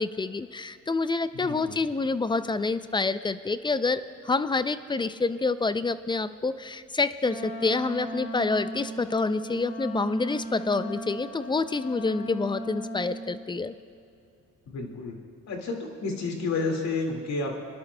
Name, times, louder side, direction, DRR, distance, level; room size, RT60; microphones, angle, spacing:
voice 1, 0.0-13.7, left 3 dB, 15° left, 13 dB, 0.3 m, -27 dB
voice 2, 1.3-1.8 14.7-15.1 15.5-17.6, left 3 dB, 65° left, 2 dB, 2.0 m, -31 dB
Wind instrument woodwind instrument, 7.2-13.3, right 1 dB, 85° left, 3.1 m, -37 dB
25.0 x 11.0 x 2.2 m, 2.5 s
cardioid pair, 90°, 30 cm